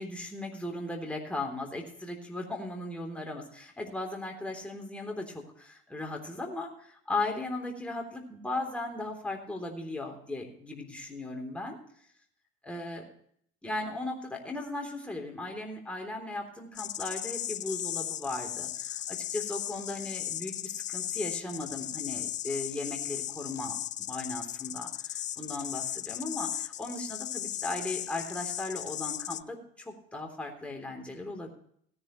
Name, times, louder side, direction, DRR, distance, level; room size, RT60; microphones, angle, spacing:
voice 1, 0.0-11.8 12.6-13.1 13.6-23.8 24.1-31.5, left 2 dB, 5° left, 1 dB, 3.4 m, -37 dB
sound 1, 16.7-29.4, left 12 dB, 35° left, 0.4 m, -36 dB
17.0 x 10.5 x 3.1 m, 0.65 s
supercardioid pair, 105°, 21 cm